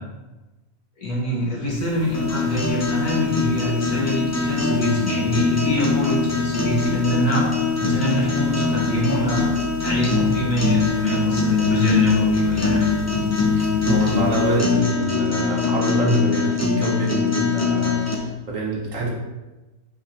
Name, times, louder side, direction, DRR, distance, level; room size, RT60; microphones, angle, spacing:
voice 1, 1.0-7.5 7.8-9.5 9.8-12.9, equal, 85° left, -4 dB, 2.5 m, -24 dB
sound 1, 1.7-14.6, left 6 dB, 70° left, 0.6 m, -37 dB
sound 2, 2.1-18.1, left 4 dB, 15° left, 0.6 m, -22 dB
voice 2, 13.5-19.1, right 2 dB, 60° right, -2 dB, 1.7 m, -26 dB
5.7 x 4.4 x 5.8 m, 1.1 s
omnidirectional pair, 1.6 m